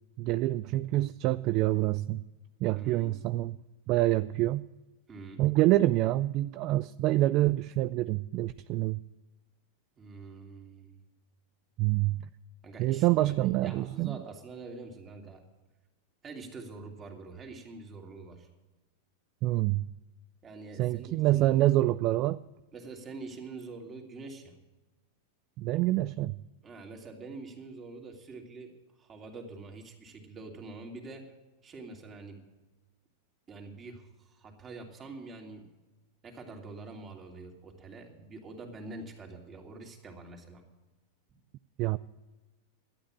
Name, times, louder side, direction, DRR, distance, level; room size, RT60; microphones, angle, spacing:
voice 1, 0.2-2.2 2.6-3.6 3.9-4.7 5.4-9.0 11.8-12.2 12.8-14.2 19.4-19.9 20.8-22.4 25.6-26.4 41.8-42.0, right 16 dB, 45° right, 15 dB, 0.4 m, -26 dB
voice 2, 2.7-3.1 5.1-5.4 10.0-11.0 12.6-15.4 16.2-18.5 20.4-21.6 22.7-24.6 26.6-31.3 31.6-32.4 33.5-35.7 36.2-40.7, right 3 dB, 25° right, 2 dB, 2.9 m, -45 dB
12.5 x 8.9 x 8.7 m, 1.1 s
hypercardioid pair, 115°, 0 cm